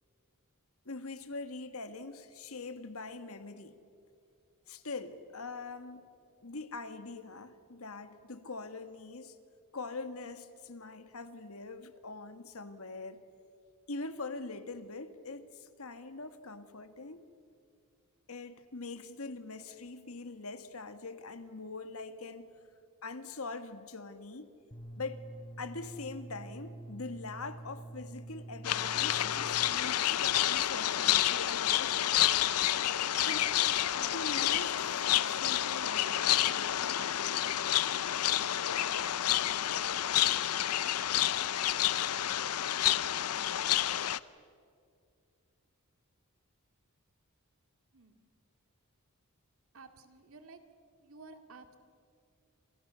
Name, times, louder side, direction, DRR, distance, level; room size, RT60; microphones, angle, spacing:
voice 1, 0.8-3.8 4.7-6.1 6.4-9.4 9.7-13.2 13.9-17.3 18.3-22.5 23.0-24.5 25.0-25.2 25.6-31.9 33.2-33.5 34.0-36.9, left 3 dB, 70° left, 10 dB, 1.7 m, -43 dB
sound 1, 24.7-29.7, right 2 dB, 25° left, 4.5 m, -46 dB
sound 2, 28.6-44.2, left 12 dB, 90° left, 0.6 m, -29 dB
voice 2, 49.7-50.6 51.0-51.8, right 3 dB, 65° right, 7 dB, 2.3 m, -53 dB
29.0 x 26.5 x 6.9 m, 2.4 s
head